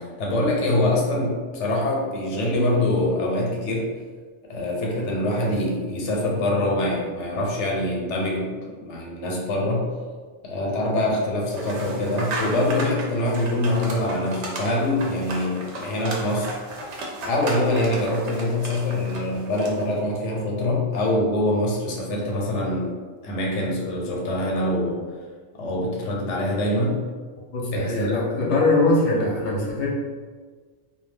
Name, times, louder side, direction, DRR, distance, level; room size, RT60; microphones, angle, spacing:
voice 1, 0.0-3.9 4.5-8.5 8.8-9.9 10.4-16.5 17.2-22.9 23.2-25.0 25.5-27.0 27.7-28.2, left 1 dB, 85° left, -2 dB, 0.9 m, -24 dB
sound 1, 11.5-20.0, right 2 dB, 80° right, 0.9 m, -35 dB
voice 2, 27.5-29.9, left 2 dB, 50° left, -2 dB, 0.7 m, -22 dB
2.2 x 2.2 x 3.3 m, 1.5 s
omnidirectional pair, 1.2 m